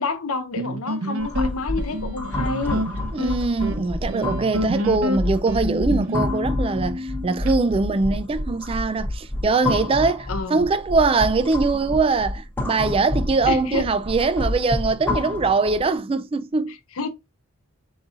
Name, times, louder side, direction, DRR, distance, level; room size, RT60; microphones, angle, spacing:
voice 1, 0.0-2.9 4.7-5.2 10.3-10.7 13.5-13.9 16.7-17.1, left 4 dB, 80° left, 0.8 m, -29 dB
sound 1, 0.6-7.5, equal, 80° right, 0.8 m, -28 dB
sound 2, 1.2-15.9, left 2 dB, 10° left, 0.9 m, -29 dB
voice 2, 3.1-16.7, right 3 dB, 25° right, 0.3 m, -22 dB
4.9 x 4.0 x 2.5 m
head